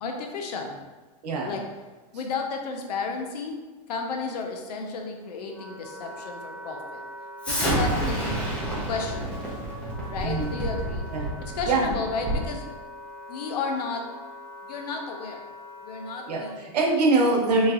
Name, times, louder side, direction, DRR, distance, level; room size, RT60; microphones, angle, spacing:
voice 1, 0.0-0.8 1.4-1.6 2.1-3.6 3.9-7.0 7.5-8.4 8.9-9.5 10.1-11.1 11.4-12.6 13.3-14.1 14.6-15.5 15.8-16.7, left 4 dB, 75° left, 3 dB, 0.6 m, -33 dB
voice 2, 1.2-1.5 7.7-8.1 10.2-10.6 11.1-11.3 11.6-11.9 16.3-17.7, right 3 dB, 85° right, 0 dB, 0.8 m, -24 dB
Wind instrument woodwind instrument, 5.1-16.5, equal, 40° left, 0.8 m, -42 dB
Explosion, 7.4-12.5, right 1 dB, 5° left, 0.7 m, -29 dB
3.2 x 2.7 x 2.4 m, 1.3 s
supercardioid pair, 140°, 20 cm